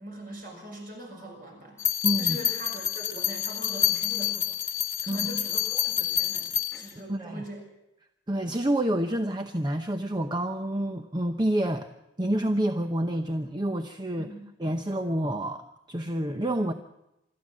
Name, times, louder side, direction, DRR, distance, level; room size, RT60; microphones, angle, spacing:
voice 1, 0.0-1.9 2.2-4.7 5.0-7.6 14.2-14.4, right 1 dB, 45° right, 1 dB, 6.7 m, -41 dB
sound 1, 1.8-6.9, left 10 dB, 15° left, 1.4 m, -28 dB
voice 2, 2.0-2.4 5.1-5.3 7.1-7.4 8.3-11.9 12.2-14.3 14.6-16.7, right 1 dB, 20° right, 6 dB, 0.8 m, -28 dB
25.5 x 13.5 x 7.5 m, 0.89 s
head